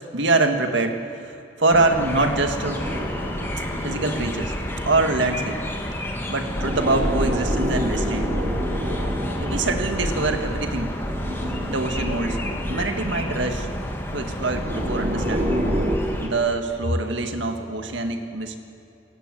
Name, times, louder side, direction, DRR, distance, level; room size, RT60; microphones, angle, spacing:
voice 1, 0.1-1.0 1.2-1.3 1.6-3.1 3.8-4.5 4.9-5.6 6.3-8.3 9.4-10.9 11.7-12.4 12.7-13.7 14.1-15.6 16.2-18.6, right 2 dB, 75° right, 5 dB, 1.9 m, -24 dB
sound 1, 1.7-16.3, left 1 dB, 10° left, 2.2 m, -31 dB
sound 2, 2.8-5.9 6.3-16.0, equal, 45° right, 3.3 m, -28 dB
27.5 x 15.0 x 7.9 m, 2.8 s
head